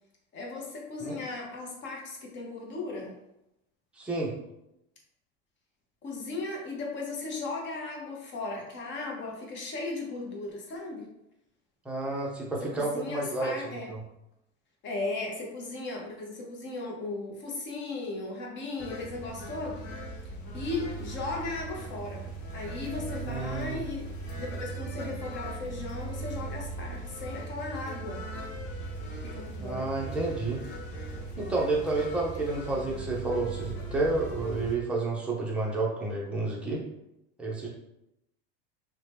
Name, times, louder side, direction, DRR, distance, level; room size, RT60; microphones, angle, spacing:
voice 1, 0.3-3.2 6.0-11.1 12.6-13.9 14.8-19.8 20.5-22.3 22.5-28.2 29.2-29.9, left 3 dB, 35° left, 0 dB, 0.7 m, -36 dB
voice 2, 4.0-4.3 11.8-13.5 13.9-14.0 23.2-23.8 29.6-30.6 31.4-36.8 37.4-37.7, right 3 dB, 5° right, -3 dB, 0.5 m, -30 dB
sound 1, 18.8-34.8, right 2 dB, 65° left, 0.8 m, -38 dB
2.8 x 2.1 x 3.3 m, 0.84 s
supercardioid pair, 125°, 32 cm